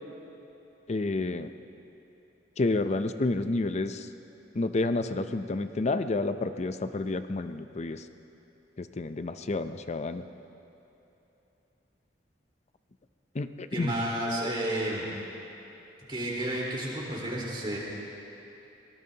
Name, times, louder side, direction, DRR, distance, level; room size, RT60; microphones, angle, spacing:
voice 1, 0.9-1.5 2.6-4.1 4.5-8.0 8.8-10.2 13.3-13.9, left 2 dB, 40° left, 10 dB, 0.5 m, -30 dB
voice 2, 13.7-15.1 16.1-17.8, right 1 dB, 30° right, -6 dB, 4.1 m, -31 dB
23.5 x 18.5 x 2.9 m, 3.0 s
head